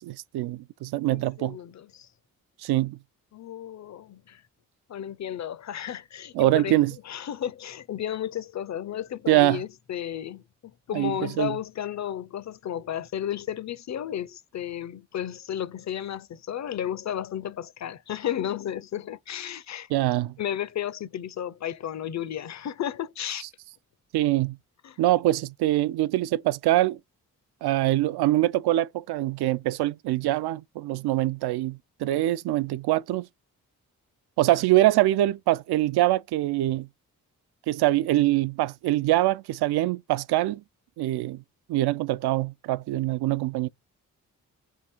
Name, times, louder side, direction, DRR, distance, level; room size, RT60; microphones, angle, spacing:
voice 1, 0.0-1.6 2.6-3.0 6.3-6.9 9.3-9.6 10.9-11.6 19.9-20.4 24.1-24.6 25.0-27.0 27.6-33.3 34.4-36.9 37.7-40.6 41.0-41.4 41.7-43.7, right 15 dB, 70° right, 0.5 m, -24 dB
voice 2, 1.0-2.1 3.3-4.4 4.9-6.8 7.0-10.4 10.9-19.9 20.4-23.4 24.8-25.0, left 10 dB, 45° left, 0.6 m, -33 dB
3.7 x 2.4 x 4.4 m
supercardioid pair, 45°, 40 cm